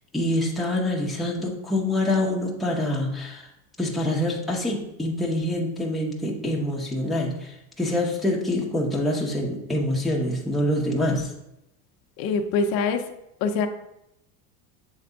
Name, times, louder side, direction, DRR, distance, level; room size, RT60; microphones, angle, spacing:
voice 1, 0.1-3.5 3.8-11.3, left 1 dB, ahead, -3 dB, 0.8 m, -26 dB
voice 2, 12.2-13.0 13.4-13.7, left 4 dB, 55° left, 5 dB, 0.6 m, -24 dB
7.2 x 3.4 x 3.8 m, 0.83 s
cardioid pair, 140°, 42 cm